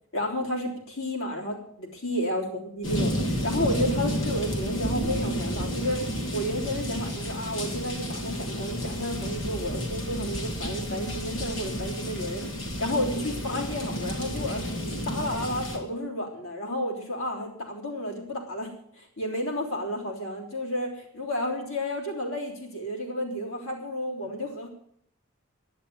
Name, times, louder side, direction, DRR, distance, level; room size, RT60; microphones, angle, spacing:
voice 1, 0.1-12.5 12.8-14.7 15.1-24.7, left 1 dB, 90° left, 0 dB, 3.6 m, -31 dB
sound 1, 2.8-15.8, equal, 70° left, 3.4 m, -31 dB
11.0 x 10.0 x 9.4 m, 0.66 s
head